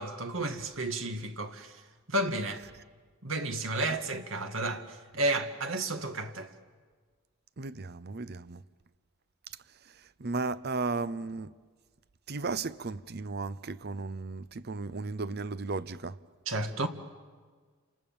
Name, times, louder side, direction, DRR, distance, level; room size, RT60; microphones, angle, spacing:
voice 1, 0.0-1.8 2.1-2.6 3.2-6.5 16.5-16.9, right 2 dB, 75° right, 2.0 m, -32 dB
voice 2, 7.6-8.6 10.2-11.5 12.3-16.2, right 3 dB, 50° right, 0.7 m, -35 dB
29.5 x 27.5 x 7.3 m
head